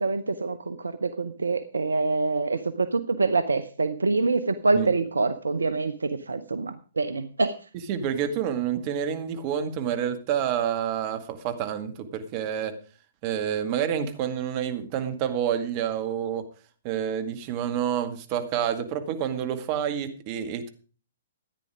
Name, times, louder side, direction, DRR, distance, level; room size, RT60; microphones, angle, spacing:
voice 1, 0.0-7.6, right 3 dB, 75° right, 12 dB, 0.8 m, -26 dB
voice 2, 7.9-12.7 13.2-16.4 16.8-20.7, right 9 dB, 35° right, 8 dB, 2.1 m, -28 dB
14.0 x 9.9 x 4.9 m, 0.38 s
figure-of-eight pair, 120°, 0 cm